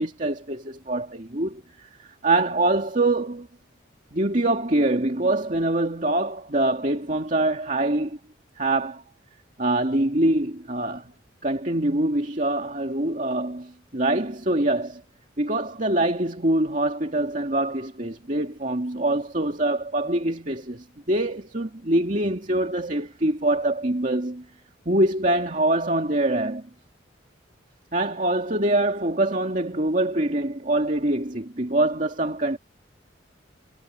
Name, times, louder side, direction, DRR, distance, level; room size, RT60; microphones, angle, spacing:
voice 1, 0.0-3.5 4.1-8.2 8.6-9.0 9.6-11.1 11.4-15.0 15.4-24.4 24.9-26.7 27.9-32.6, right 1 dB, 40° right, 2.3 m, -24 dB
head